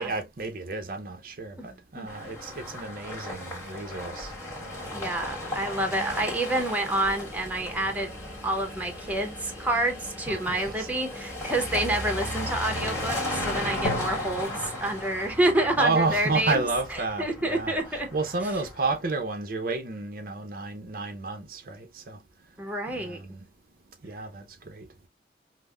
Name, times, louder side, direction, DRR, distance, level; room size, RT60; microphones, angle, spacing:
voice 1, 0.0-4.3 4.6-5.1 5.5-5.6 10.3-10.9 15.7-22.2 22.9-23.5 24.0-24.9, right 3 dB, 50° right, 0.5 m, -31 dB
sound 1, 2.1-19.0, left 1 dB, 15° left, 1.5 m, -36 dB
voice 2, 4.9-8.1 8.4-16.6 17.2-18.1 22.6-23.2, right 1 dB, 10° right, 0.7 m, -28 dB
Drum, 13.8-17.5, left 1 dB, 75° left, 1.0 m, -39 dB
5.2 x 2.0 x 2.2 m
head